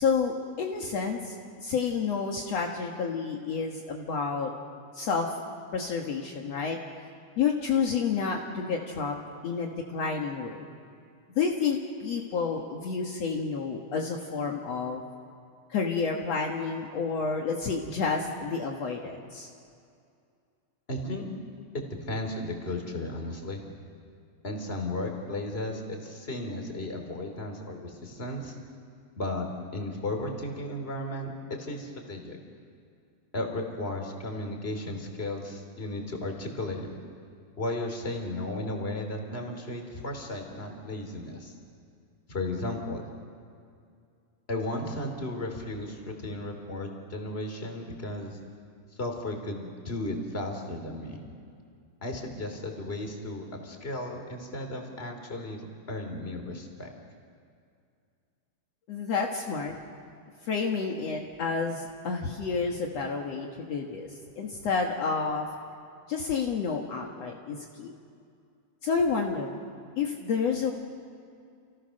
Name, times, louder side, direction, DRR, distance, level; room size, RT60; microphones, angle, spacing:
voice 1, 0.0-4.5 4.9-5.4 5.7-6.8 7.4-9.2 9.4-10.7 11.4-15.0 15.7-19.5 58.9-59.7 60.4-65.5 66.1-67.9 68.8-69.6 70.0-70.7, left 5 dB, 60° left, 1 dB, 2.6 m, -30 dB
voice 2, 20.9-21.3 21.7-23.6 24.4-28.6 29.2-29.5 29.7-32.4 33.3-36.9 37.6-41.6 42.3-43.0 44.5-48.4 48.9-51.3 52.0-56.9, left 1 dB, 20° left, 3 dB, 3.3 m, -35 dB
30.0 x 29.5 x 6.5 m, 2.4 s
omnidirectional pair, 3.4 m